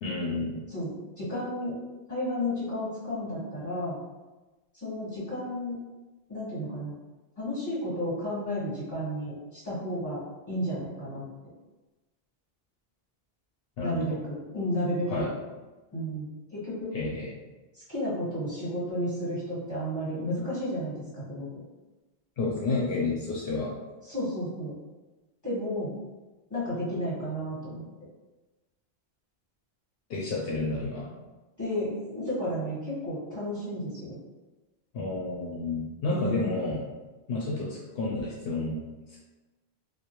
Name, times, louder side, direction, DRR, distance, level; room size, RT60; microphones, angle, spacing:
voice 1, 0.0-0.6 13.8-14.0 15.1-15.3 16.9-17.3 22.4-23.7 30.1-31.1 34.9-36.8 37.3-38.7 39.1-39.2, left 3 dB, 70° left, -5 dB, 0.7 m, -30 dB
voice 2, 0.7-1.8 2.1-4.0 4.7-5.8 6.3-6.9 7.4-10.2 10.5-11.2 13.8-15.3 15.9-16.9 17.7-21.5 24.0-24.7 25.4-25.9 26.5-27.8 31.6-34.2 36.1-36.4, equal, 15° left, -11 dB, 1.3 m, -32 dB
2.3 x 2.1 x 2.9 m, 1.2 s
omnidirectional pair, 1.0 m